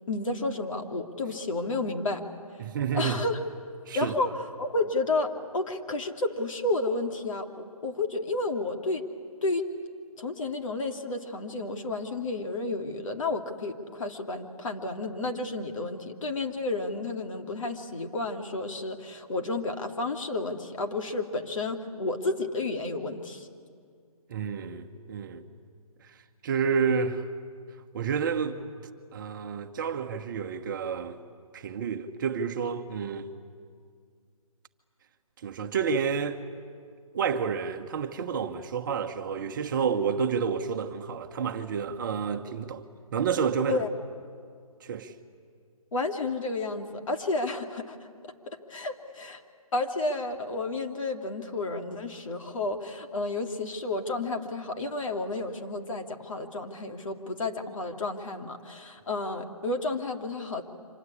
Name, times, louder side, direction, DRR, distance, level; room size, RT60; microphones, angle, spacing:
voice 1, 0.1-2.2 2.9-3.4 3.9-4.3 4.6-9.1 9.4-9.6 10.2-23.5 43.7-43.9 45.9-48.0 48.2-49.4 49.7-60.6, left 2 dB, 60° left, 2.7 m, -31 dB
voice 2, 2.6-3.2 3.9-4.1 24.3-25.4 26.4-27.3 27.9-28.6 29.1-31.2 31.5-33.3 35.4-36.4 37.1-42.8 43.1-43.8 44.8-45.1, right 6 dB, 35° right, 1.2 m, -29 dB
27.5 x 26.0 x 8.5 m
figure-of-eight pair, 155°, 19 cm